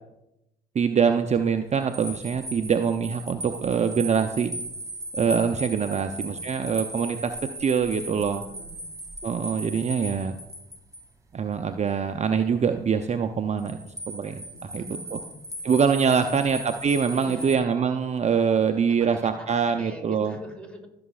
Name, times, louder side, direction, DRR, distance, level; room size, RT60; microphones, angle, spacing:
voice 1, 0.7-4.5 5.1-8.4 9.2-10.4 11.3-14.5 14.7-14.8 15.1-15.2 15.6-20.3, right 6 dB, 35° right, 7 dB, 0.6 m, -24 dB
sound 1, 1.7-11.1 13.6-17.6, right 1 dB, 15° right, 2.1 m, -37 dB
voice 2, 5.9-6.5 8.3-9.0 14.5-15.4 16.1-16.5 17.1-17.7 18.9-20.9, equal, 5° left, 2 dB, 3.1 m, -44 dB
15.5 x 6.9 x 2.4 m, 0.89 s
hypercardioid pair, 55°, 19 cm